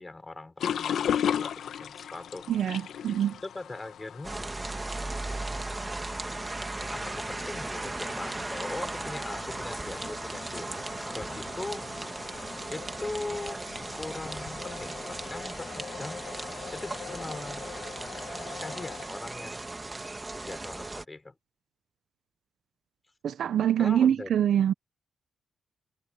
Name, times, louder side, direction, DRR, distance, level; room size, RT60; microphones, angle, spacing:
voice 1, 0.0-2.5 3.4-4.5 6.9-10.7 11.1-11.9 12.7-13.6 13.9-16.3 16.7-17.6 18.6-19.7 20.3-21.3 23.8-24.3, left 2 dB, 20° left, 6.2 m, -40 dB
sound 1, 0.6-19.1, left 9 dB, 70° left, 1.1 m, -38 dB
voice 2, 2.5-3.4 23.2-24.7, right 10 dB, 70° right, 0.7 m, -24 dB
sound 2, 4.2-21.0, right 2 dB, 20° right, 1.8 m, -37 dB
cardioid pair, 115°, 0 cm